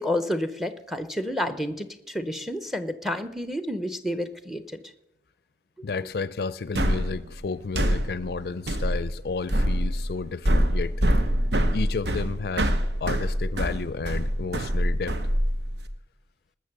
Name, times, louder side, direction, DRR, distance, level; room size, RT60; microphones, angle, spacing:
voice 1, 0.0-4.8, left 1 dB, ahead, 0.7 m, -30 dB
voice 2, 5.8-10.9 11.7-12.7 13.0-15.2, left 4 dB, 60° left, 0.4 m, -31 dB
sound 1, 6.8-15.9, equal, 75° right, 1.0 m, -25 dB
19.5 x 6.6 x 6.7 m
head